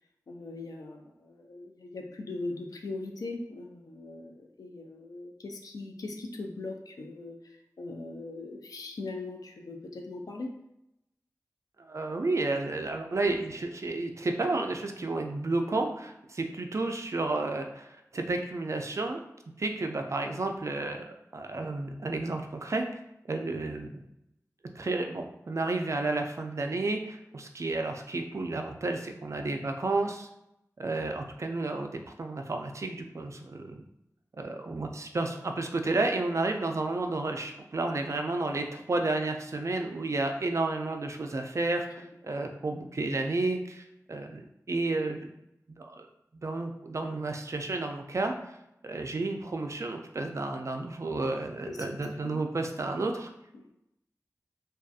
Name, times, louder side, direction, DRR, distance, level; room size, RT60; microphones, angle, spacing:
voice 1, 0.3-10.5 51.6-51.9 52.2-52.3 53.5-53.6, left 2 dB, 80° left, 3 dB, 0.4 m, -40 dB
voice 2, 11.9-19.2 19.6-21.0 21.3-22.8 23.3-24.0 24.8-30.3 30.8-33.8 34.4-45.3 45.8-46.1 46.4-48.3 48.8-53.3, right 2 dB, 55° right, 4 dB, 0.3 m, -31 dB
2.5 x 2.3 x 2.4 m, 0.84 s
cardioid pair, 45°, 6 cm